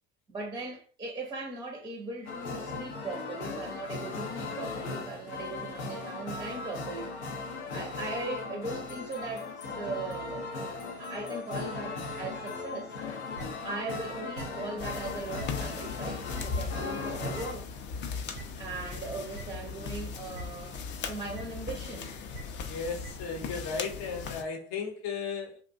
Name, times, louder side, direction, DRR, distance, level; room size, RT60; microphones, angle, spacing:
voice 1, 0.3-7.1 7.7-12.9 13.6-17.7 18.6-22.1, right 3 dB, 15° right, 0.5 m, -39 dB
sound 1, 2.3-17.5, left 3 dB, 80° left, 0.6 m, -38 dB
sound 2, 13.3-13.4 14.3-14.4 15.3-15.4 16.3-16.4 17.3-17.4 18.3-18.4 19.3-19.4 20.3-20.4 21.3-21.4 22.3-22.4 23.0-23.1, right 4 dB, 90° right, 0.6 m, -42 dB
sound 3, 14.8-24.4, left 5 dB, 35° left, 0.5 m, -38 dB
voice 2, 22.7-25.6, left 5 dB, 50° left, 0.8 m, -35 dB
2.5 x 2.1 x 2.5 m
hypercardioid pair, 70°, 33 cm